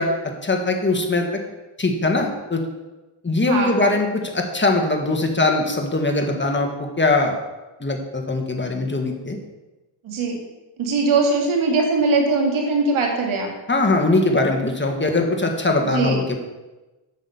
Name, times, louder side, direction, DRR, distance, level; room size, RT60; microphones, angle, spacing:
voice 1, 0.0-1.4 1.8-2.6 3.2-7.3 7.8-9.4 13.7-16.4, left 2 dB, 25° left, 3 dB, 1.6 m, -21 dB
voice 2, 3.4-3.9 10.0-10.4 10.8-13.5 15.9-16.2, right 3 dB, 85° right, 1 dB, 2.3 m, -21 dB
8.3 x 6.2 x 7.1 m, 1.1 s
cardioid pair, 85°, 47 cm